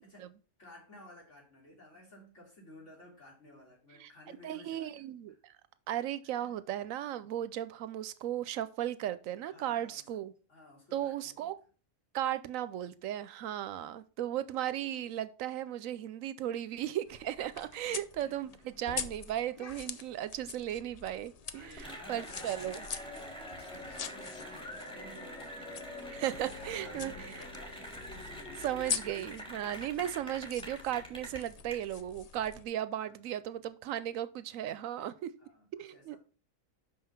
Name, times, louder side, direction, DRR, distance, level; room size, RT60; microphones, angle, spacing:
voice 1, 0.0-0.3 0.6-5.4 6.3-6.5 9.5-10.2 10.5-11.5 17.9-18.8 21.5-28.9 33.0-33.3 35.4-36.2, left 1 dB, 60° left, -2 dB, 3.3 m, -55 dB
voice 2, 4.4-5.5 5.9-10.3 10.9-11.5 12.1-22.8 26.1-27.1 28.6-35.3 35.7-36.2, right 11 dB, 75° right, 14 dB, 1.0 m, -36 dB
sound 1, 17.1-32.6, left 7 dB, 80° left, 0.3 m, -44 dB
Cheering / Applause, 21.8-31.7, equal, 5° left, 1.7 m, -45 dB
5.7 x 5.7 x 5.8 m, 0.38 s
omnidirectional pair, 1.4 m